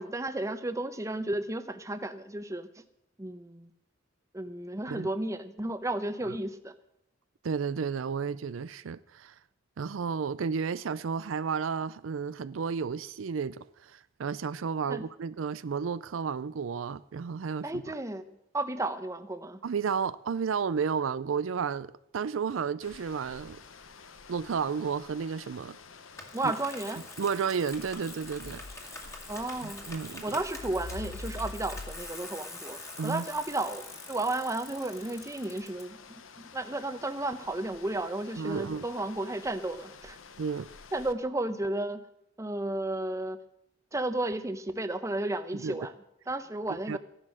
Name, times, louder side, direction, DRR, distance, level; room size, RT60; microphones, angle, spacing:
voice 1, 0.0-2.7 3.2-3.7 4.3-6.7 14.9-15.0 17.6-19.6 26.3-27.0 29.3-29.9 30.2-36.0 36.5-40.2 40.9-42.0 42.4-43.4 43.9-45.9 46.3-47.0, right 2 dB, 15° right, 0.8 m, -33 dB
voice 2, 7.4-9.3 9.8-17.8 19.6-23.6 24.3-25.8 26.4-26.5 27.2-28.6 29.0-29.2 29.6-30.4 33.0-33.3 38.4-38.9 40.4-40.7 45.6-45.8 46.9-47.0, right 6 dB, 80° right, 0.4 m, -32 dB
sound 1, 22.8-41.1, left 3 dB, 85° left, 1.0 m, -48 dB
Bicycle, 26.2-35.8, left 2 dB, 15° left, 2.0 m, -45 dB
14.5 x 11.0 x 6.4 m
head